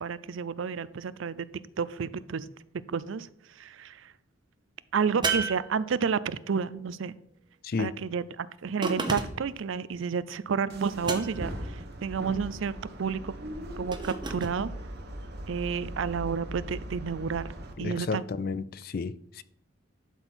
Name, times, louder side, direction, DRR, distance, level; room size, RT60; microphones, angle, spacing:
voice 1, 0.0-1.5 1.8-2.5 2.9-4.1 4.9-7.1 7.8-13.3 13.8-14.7 15.5-17.5 17.8-18.2, right 6 dB, 70° right, 0.4 m, -31 dB
sound 1, 5.2-6.3 8.8-9.6 11.0-11.6 13.9-14.6, right 4 dB, 20° right, 0.9 m, -32 dB
voice 2, 7.6-8.0 17.8-19.4, left 4 dB, 45° left, 0.4 m, -32 dB
sound 2, 10.7-17.7, right 1 dB, 50° right, 1.2 m, -40 dB
11.5 x 4.4 x 6.0 m
head